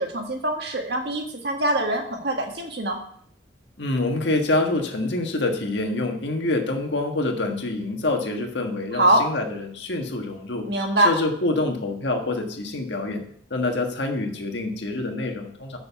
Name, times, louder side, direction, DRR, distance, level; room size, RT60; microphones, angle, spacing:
voice 1, 0.0-3.0 8.9-9.2 10.7-11.1, right 1 dB, 70° right, 2 dB, 1.7 m, -23 dB
voice 2, 3.8-10.6 11.0-13.2 13.5-15.8, left 2 dB, 85° left, 3 dB, 1.6 m, -26 dB
7.0 x 6.6 x 6.9 m, 0.63 s
head